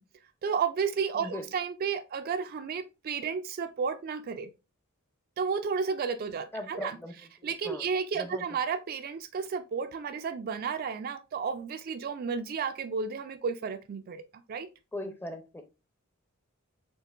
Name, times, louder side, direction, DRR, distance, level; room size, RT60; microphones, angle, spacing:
voice 1, 0.4-4.5 5.4-7.0 7.4-14.2 14.5-14.7, right 6 dB, 45° right, 0.3 m, -32 dB
voice 2, 1.1-1.5 6.5-7.1 7.4-7.9 8.1-8.4 14.9-15.6, left 1 dB, 10° left, 0.6 m, -39 dB
6.5 x 2.5 x 2.4 m
head